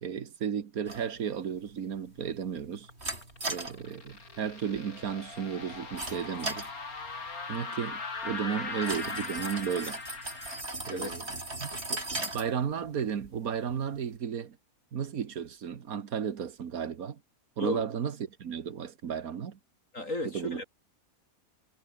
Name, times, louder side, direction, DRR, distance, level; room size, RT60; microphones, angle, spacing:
voice 1, 0.0-2.9 3.5-6.7 7.5-10.0 10.9-11.2 11.6-14.6 14.9-17.2 17.6-19.6 20.2-20.6, right 7 dB, 80° right, 1.8 m, -34 dB
sound 1, 0.9-14.2, right 2 dB, 45° right, 5.6 m, -41 dB
sound 2, 2.9-10.6, left 4 dB, 85° left, 3.4 m, -40 dB
voice 2, 19.9-20.6, left 2 dB, 60° left, 7.5 m, -34 dB
omnidirectional pair, 1.5 m